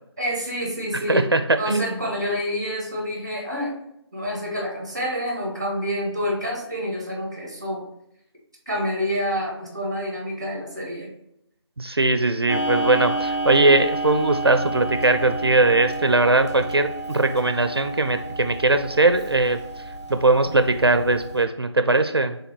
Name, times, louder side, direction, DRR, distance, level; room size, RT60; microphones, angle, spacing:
voice 1, 0.2-1.3 1.6-3.7 4.1-7.8 8.7-11.1, equal, 10° right, -1 dB, 0.6 m, -28 dB
voice 2, 1.1-1.4 1.7-2.0 11.8-19.6 20.1-22.4, right 2 dB, 60° right, 9 dB, 0.4 m, -20 dB
Clock, 12.5-21.4, right 2 dB, 75° left, 1.0 m, -30 dB
5.3 x 3.4 x 2.9 m, 0.79 s
figure-of-eight pair, 165°, 15 cm